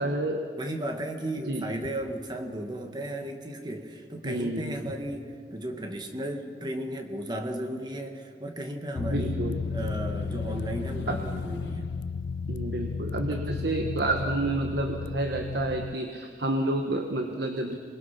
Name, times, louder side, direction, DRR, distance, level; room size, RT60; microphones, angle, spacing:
voice 1, 0.0-0.4 1.5-1.8 4.2-4.9 9.0-9.6 11.1-11.2 12.5-17.7, right 2 dB, 70° right, 4 dB, 1.4 m, -30 dB
voice 2, 0.6-9.4 9.7-11.9 13.3-13.4, right 1 dB, 25° right, 4 dB, 1.6 m, -35 dB
sound 1, 9.0-16.0, left 4 dB, 85° left, 0.5 m, -33 dB
27.0 x 21.0 x 5.8 m, 2.2 s
head